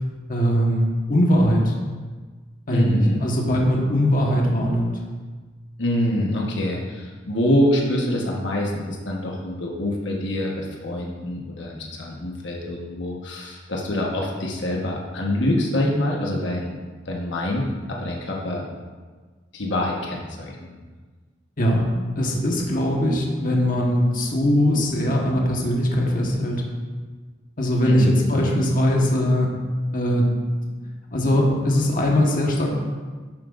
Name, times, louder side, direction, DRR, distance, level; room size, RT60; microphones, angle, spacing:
voice 1, 0.3-1.7 2.7-4.9 21.6-21.9 22.2-26.6 27.6-29.5 29.7-30.3 31.1-32.7, equal, 50° left, -1 dB, 1.3 m, -20 dB
voice 2, 2.7-3.2 5.8-16.7 17.1-18.7 19.5-20.8 27.8-28.5, left 1 dB, 80° left, -2 dB, 1.3 m, -25 dB
11.0 x 7.7 x 2.6 m, 1.4 s
head